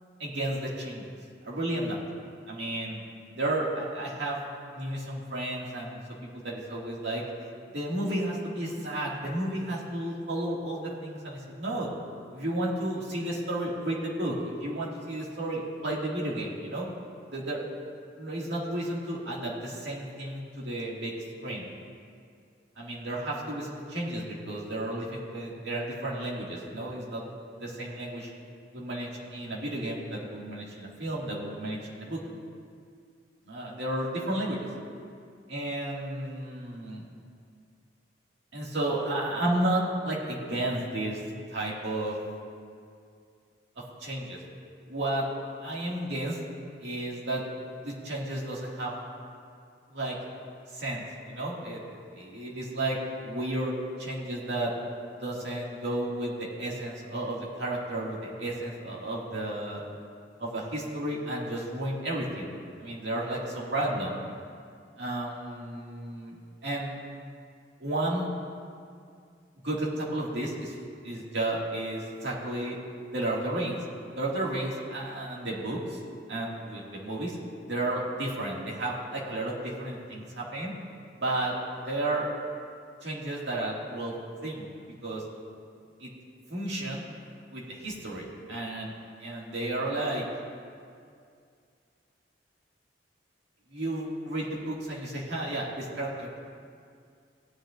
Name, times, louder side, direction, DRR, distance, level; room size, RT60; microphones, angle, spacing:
voice 1, 0.2-1.0 1.4-2.0 2.5-3.0 3.3-4.4 4.7-7.2 7.7-11.9 12.3-16.9 17.3-17.6 18.2-21.1 21.4-21.7 22.8-27.2 27.6-28.3 28.7-32.2 33.5-34.7 35.5-37.0 38.5-41.2 41.5-42.2 44.0-44.4 44.9-45.3 45.6-46.4 46.8-47.4 47.8-48.9 49.9-50.1 50.7-53.7 54.0-54.7 55.2-59.8 60.4-64.2 65.0-67.0 67.8-68.3 69.6-70.8 71.0-72.8 73.1-73.8 74.2-76.0 76.3-77.4 77.7-80.7 81.2-81.6 81.9-82.3 83.0-84.1 84.4-84.7 85.0-85.2 86.0-86.1 86.5-87.1 87.5-88.9 89.2-90.3 93.7-96.4, right 1 dB, 70° right, -4 dB, 2.1 m, -32 dB
16.5 x 9.9 x 2.5 m, 2.3 s
head